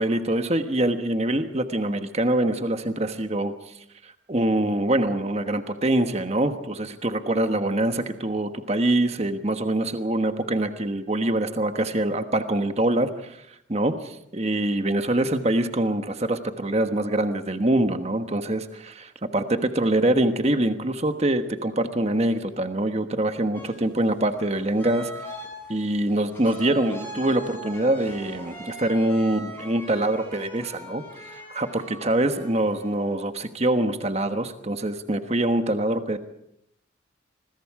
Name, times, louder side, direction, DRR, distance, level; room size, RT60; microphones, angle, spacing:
voice 1, 0.0-3.7 4.0-13.4 13.7-25.1 25.7-36.2, right 1 dB, 35° right, 8 dB, 1.3 m, -24 dB
sound 1, 23.5-33.1, equal, 10° left, 6.9 m, -41 dB
27.0 x 21.5 x 4.9 m, 0.77 s
head